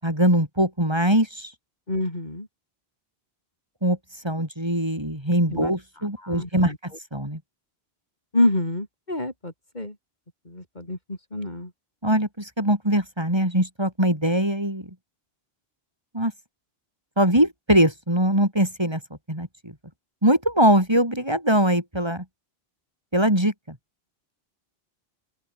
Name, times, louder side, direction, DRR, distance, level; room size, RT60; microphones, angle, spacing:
voice 1, 0.0-1.5 3.8-4.0 4.2-7.4 12.0-14.9 16.1-16.3 17.2-19.0 19.3-19.7 20.2-22.2 23.1-23.8, right 1 dB, 25° right, 5.4 m, -22 dB
voice 2, 1.9-2.5 5.5-5.7 6.2-6.8 8.3-9.9 10.5-11.7, left 1 dB, 45° left, 4.5 m, -27 dB
open air
omnidirectional pair, 1.0 m